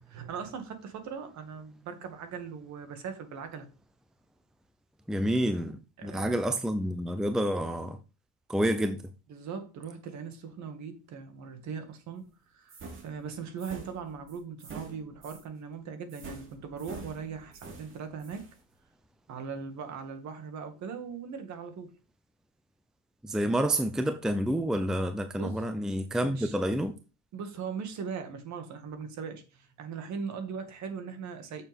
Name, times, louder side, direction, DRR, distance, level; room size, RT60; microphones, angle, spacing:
voice 1, 0.0-3.7 6.0-6.5 9.3-12.8 13.0-18.4 19.3-21.9 25.3-25.6 26.2-26.5 27.3-31.6, right 6 dB, 50° right, 2.2 m, -40 dB
voice 2, 5.1-8.0 8.5-9.1 23.2-27.0, right 1 dB, ahead, 0.7 m, -29 dB
sound 1, 12.7-15.5 16.1-18.6, right 4 dB, 35° right, 2.5 m, -46 dB
8.2 x 6.9 x 3.6 m
supercardioid pair, 110°, 37 cm